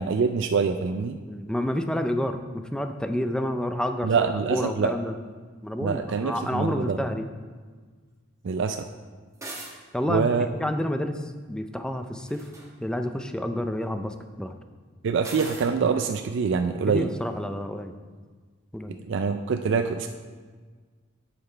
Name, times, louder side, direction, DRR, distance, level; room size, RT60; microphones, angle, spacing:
voice 1, 0.0-1.2 4.0-4.9 5.8-7.0 8.4-8.9 10.1-10.5 15.0-17.1 19.1-20.1, right 5 dB, 65° right, 7 dB, 0.4 m, -25 dB
voice 2, 1.3-5.2 5.6-7.3 9.9-10.3 10.6-12.4 12.8-14.5 16.9-17.9 18.7-19.0, left 1 dB, 5° left, 7 dB, 0.4 m, -29 dB
sound 1, 9.3-9.7 12.2-12.7 15.2-15.7, right 2 dB, 15° right, 1.6 m, -39 dB
9.8 x 5.9 x 4.4 m, 1.5 s
head